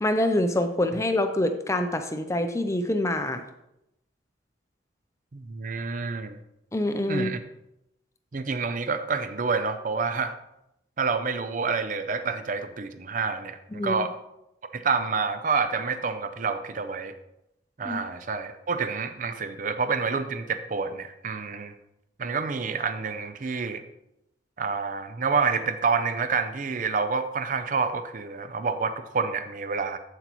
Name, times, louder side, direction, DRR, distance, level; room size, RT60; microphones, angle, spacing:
voice 1, 0.0-3.4 6.7-7.3 13.7-14.0 17.8-18.0, left 1 dB, 15° left, 7 dB, 0.5 m, -25 dB
voice 2, 5.3-6.4 7.1-7.4 8.3-10.3 11.0-14.1 14.7-17.1 17.8-21.7 22.2-23.8 24.6-30.0, right 5 dB, 45° right, 10 dB, 0.5 m, -28 dB
8.1 x 7.9 x 3.0 m, 0.86 s
head